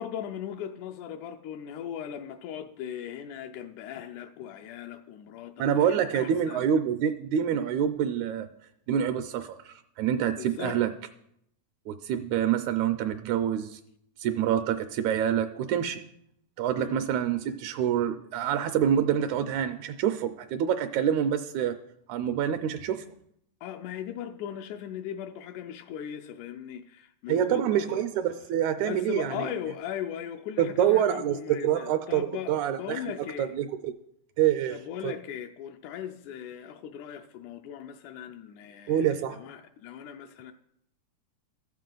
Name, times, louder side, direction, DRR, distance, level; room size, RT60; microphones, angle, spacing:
voice 1, 0.0-6.7 10.4-10.8 16.8-17.1 23.6-28.0 28.8-33.5 34.7-40.5, left 9 dB, 85° left, 5 dB, 2.0 m, -38 dB
voice 2, 5.6-8.5 8.9-10.9 11.9-13.8 14.2-16.0 16.6-21.8 22.1-23.0 27.3-29.5 30.6-33.0 33.4-33.9 34.4-34.8 35.0-35.1 38.9-39.4, right 9 dB, 80° right, 9 dB, 1.9 m, -26 dB
14.0 x 7.3 x 3.8 m, 0.73 s
omnidirectional pair, 3.4 m